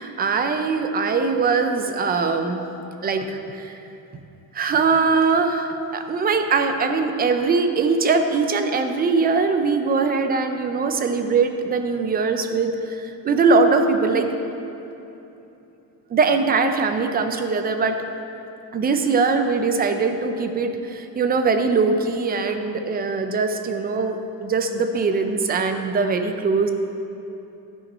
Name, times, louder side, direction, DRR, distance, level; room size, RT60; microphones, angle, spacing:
voice 1, 0.0-2.6 3.0-3.8 4.5-14.3 16.1-18.0 18.7-26.7, right 4 dB, 25° right, 6 dB, 0.5 m, -21 dB
14.0 x 5.7 x 4.2 m, 3.0 s
cardioid pair, 160°, 36 cm